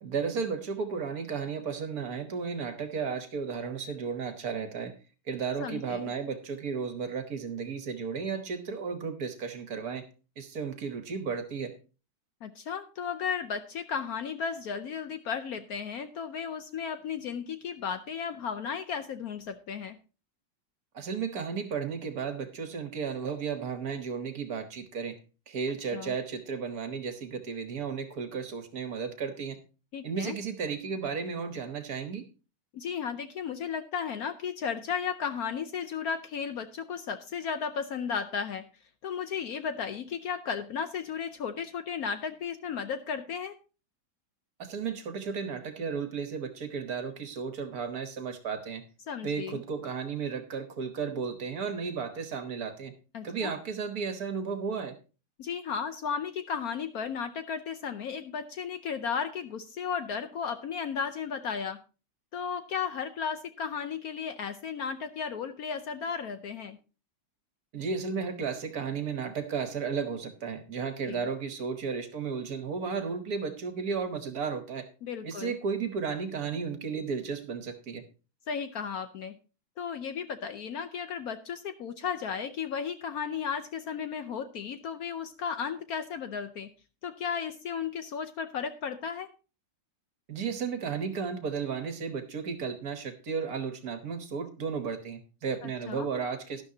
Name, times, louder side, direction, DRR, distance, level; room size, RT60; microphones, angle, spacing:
voice 1, 0.0-4.9 5.3-10.1 10.4-11.7 20.9-25.2 25.5-29.6 30.0-32.2 44.6-48.8 49.2-52.9 53.2-55.0 67.7-74.9 75.2-78.0 90.3-96.6, right 5 dB, 55° right, 8 dB, 1.5 m, -34 dB
voice 2, 5.6-6.1 12.4-20.0 25.9-26.1 29.9-30.4 32.7-38.6 39.0-43.5 49.1-49.6 53.1-53.5 55.4-61.8 62.3-66.8 71.1-71.2 75.0-75.6 78.5-79.3 79.8-86.7 87.0-89.3 95.6-96.1, left 6 dB, 65° left, 10 dB, 1.0 m, -34 dB
12.0 x 11.5 x 2.8 m, 0.33 s
omnidirectional pair, 2.0 m